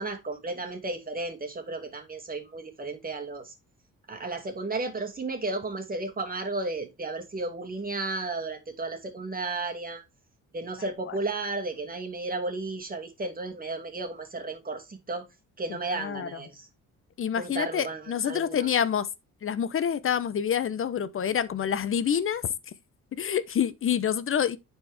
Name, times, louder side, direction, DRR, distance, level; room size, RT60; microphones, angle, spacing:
voice 1, 0.0-3.5 4.1-10.0 10.5-15.3 15.6-16.7 17.4-18.7, right 3 dB, 30° right, 2.2 m, -33 dB
voice 2, 15.9-16.4 17.2-19.1 19.4-22.5 23.1-24.6, left 8 dB, 45° left, 0.8 m, -27 dB
9.5 x 4.6 x 3.5 m
cardioid pair, 90°, 30 cm